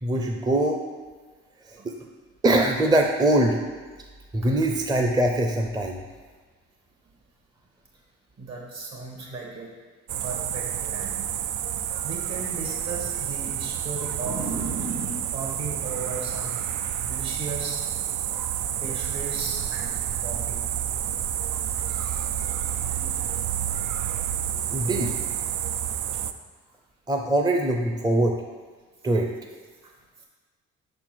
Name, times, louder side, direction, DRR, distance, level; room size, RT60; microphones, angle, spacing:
voice 1, 0.0-0.8 1.7-1.9 2.4-3.6 4.3-6.0 24.7-25.2 27.1-28.4 29.0-29.3, right 1 dB, 15° right, 2 dB, 0.5 m, -22 dB
voice 2, 8.4-9.7 10.2-11.3 12.0-16.6 17.0-17.8 18.8-20.6 21.4-21.8 22.7-23.5 24.1-24.9 25.4-26.2 29.8-30.2, right 3 dB, 60° right, -1 dB, 1.9 m, -37 dB
sound 1, 10.1-26.3, right 10 dB, 80° right, 0.5 m, -29 dB
5.6 x 4.4 x 6.2 m, 1.4 s
cardioid pair, 90°, 30 cm